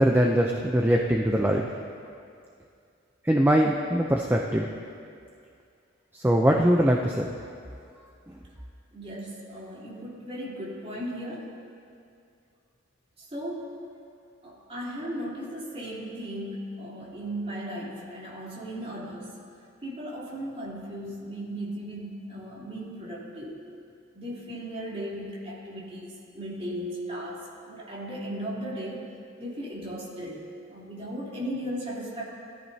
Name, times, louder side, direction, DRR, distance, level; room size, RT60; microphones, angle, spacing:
voice 1, 0.0-1.7 3.2-4.7 6.1-7.3, equal, 10° right, 0 dB, 0.6 m, -22 dB
voice 2, 8.9-11.5 13.3-13.7 14.4-19.3 19.8-23.6 24.1-29.0 29.4-32.2, equal, 30° right, -7 dB, 3.4 m, -36 dB
20.5 x 13.5 x 2.8 m, 2.4 s
head